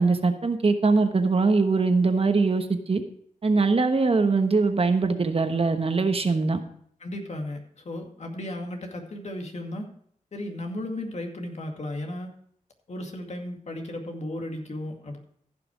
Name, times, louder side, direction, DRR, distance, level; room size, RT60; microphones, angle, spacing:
voice 1, 0.0-3.0 3.4-6.6, right 4 dB, 45° right, 7 dB, 1.2 m, -22 dB
voice 2, 7.0-9.9 10.3-12.3 12.9-15.2, left 1 dB, 55° left, 3 dB, 2.2 m, -35 dB
15.0 x 6.0 x 4.7 m, 0.65 s
wide cardioid pair, 80°, 14 cm